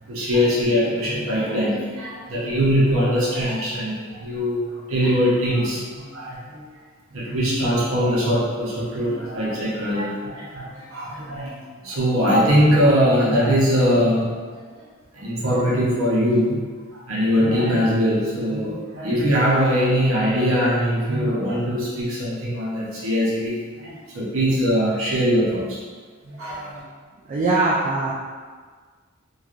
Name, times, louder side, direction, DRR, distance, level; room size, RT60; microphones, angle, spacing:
voice 1, 0.1-6.6 7.1-11.5 11.8-14.6 15.1-16.6 16.9-25.8 26.2-26.8, equal, 85° right, -6 dB, 0.7 m, -21 dB
voice 2, 27.2-28.1, right 3 dB, 35° right, -6 dB, 0.3 m, -21 dB
3.1 x 2.3 x 2.4 m, 1.5 s
head